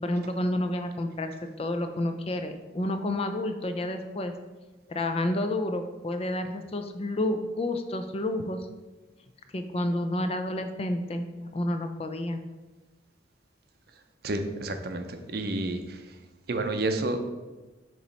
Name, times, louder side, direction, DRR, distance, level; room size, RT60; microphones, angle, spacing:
voice 1, 0.0-4.3 4.9-8.7 9.5-12.4, left 1 dB, 30° left, 7 dB, 0.4 m, -30 dB
voice 2, 14.2-16.2 16.5-17.2, right 2 dB, 55° right, 6 dB, 0.6 m, -30 dB
6.9 x 3.1 x 5.2 m, 1.2 s
head